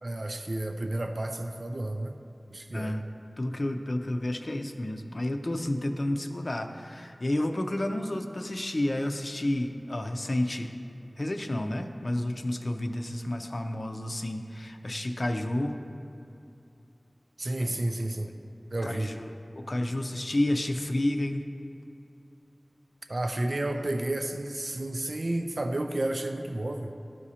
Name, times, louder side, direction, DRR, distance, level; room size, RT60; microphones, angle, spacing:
voice 1, 0.0-2.2 2.5-3.0 17.4-18.3 18.7-19.1 23.1-26.9, right 1 dB, 60° right, 5 dB, 0.4 m, -31 dB
voice 2, 3.4-10.7 11.2-15.8 17.6-17.8 18.8-19.3 19.6-21.4, left 1 dB, 55° left, 5 dB, 0.5 m, -30 dB
12.5 x 4.9 x 2.8 m, 2.8 s
wide cardioid pair, 45°, 0 cm